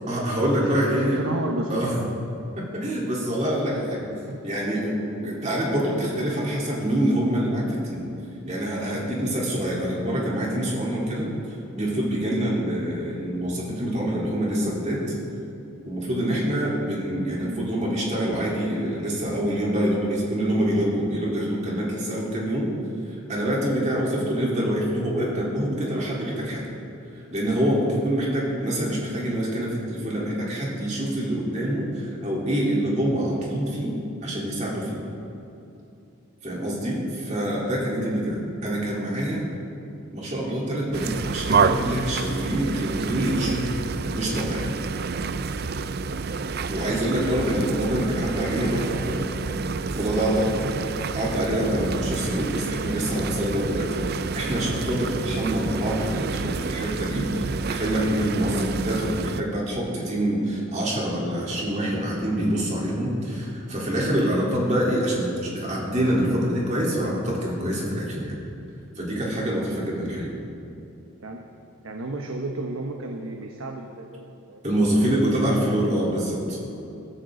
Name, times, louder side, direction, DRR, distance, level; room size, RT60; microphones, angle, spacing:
voice 1, 0.1-1.2 1.7-2.0 2.6-4.1 4.4-8.1 8.5-11.3 11.7-15.0 15.9-22.7 23.3-26.7 27.3-34.0 34.2-35.0 36.4-39.4 40.1-43.7 44.1-44.7 46.7-49.3 49.9-50.5 51.1-68.4 69.0-70.3 74.6-76.6, right 1 dB, 35° right, -4 dB, 3.6 m, -26 dB
voice 2, 1.2-1.9 4.3-4.4 17.3-17.7 38.0-38.4 48.5-49.0 71.2-71.4 71.8-74.6 75.6-75.7, right 2 dB, 80° right, 3 dB, 1.0 m, -33 dB
sound 1, 40.9-59.4, right 4 dB, 50° right, 0.5 m, -29 dB
22.5 x 13.5 x 3.9 m, 2.8 s
head